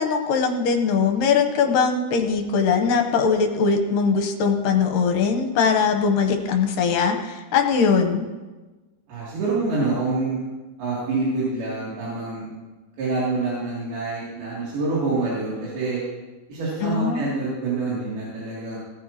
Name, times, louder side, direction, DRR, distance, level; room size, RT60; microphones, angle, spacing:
voice 1, 0.0-8.3 16.8-17.4, left 5 dB, 70° left, 5 dB, 2.5 m, -21 dB
voice 2, 9.1-10.4 10.8-12.5 13.0-16.0 16.5-18.8, right 3 dB, 80° right, -9 dB, 4.7 m, -26 dB
18.0 x 14.0 x 2.9 m, 1.2 s
omnidirectional pair, 4.3 m